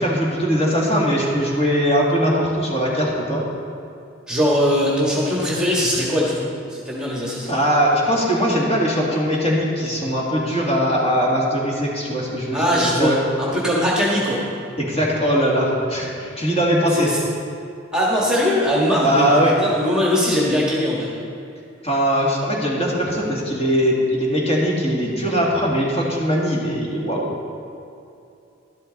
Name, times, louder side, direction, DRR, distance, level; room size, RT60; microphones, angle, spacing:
voice 1, 0.0-3.4 7.5-13.2 14.8-17.1 19.0-19.6 21.8-27.3, equal, 30° left, -5 dB, 2.3 m, -20 dB
voice 2, 4.3-7.5 12.5-13.1 13.4-14.4 16.9-17.2 17.9-21.1, equal, 5° right, -5 dB, 1.6 m, -20 dB
12.0 x 12.0 x 4.0 m, 2.6 s
head